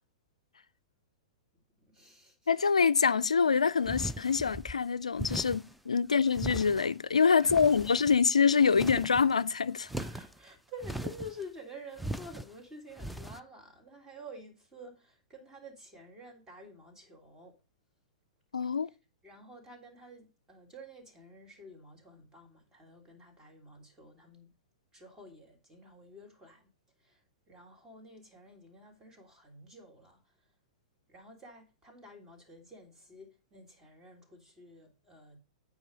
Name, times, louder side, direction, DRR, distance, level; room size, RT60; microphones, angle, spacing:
voice 1, 1.8-2.5 7.4-7.9 9.9-17.6 18.7-19.0 19.2-24.5 24.9-26.7 27.0-30.5 31.1-35.4, equal, 15° right, 3.2 m, -50 dB
voice 2, 2.5-9.9 18.5-18.9, left 6 dB, 85° left, 0.3 m, -25 dB
sound 1, 3.8-4.8 5.2-5.7 6.3-7.0 7.4-8.3 8.6-9.3 9.8-10.4 10.8-11.4 12.0-12.5 13.0-13.4, right 1 dB, ahead, 0.5 m, -39 dB
9.2 x 4.9 x 5.1 m
figure-of-eight pair, 105°, 3 cm